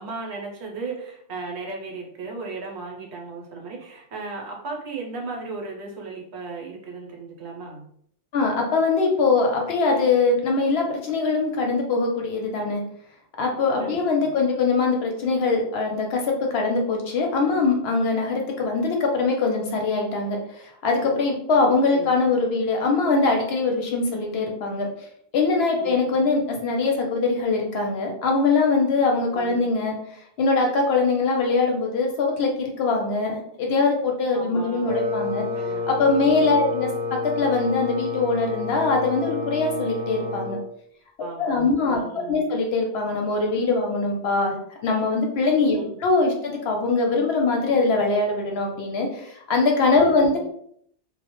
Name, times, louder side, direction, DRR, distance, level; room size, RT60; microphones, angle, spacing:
voice 1, 0.0-7.9 10.6-10.8 13.8-14.3 17.4-17.6 21.6-22.1 25.8-26.3 29.3-29.7 34.3-35.0 35.5-36.5 41.2-42.4 45.7-46.0 49.9-50.1, right 4 dB, 70° right, 0 dB, 0.9 m, -36 dB
voice 2, 8.3-12.8 13.4-24.9 25.3-29.9 30.4-35.5 35.9-40.6 41.4-44.5 44.8-50.4, left 3 dB, 70° left, 1 dB, 0.8 m, -22 dB
Wind instrument woodwind instrument, 34.8-40.6, left 3 dB, 10° left, 0.9 m, -29 dB
2.1 x 2.0 x 2.9 m, 0.67 s
omnidirectional pair, 1.2 m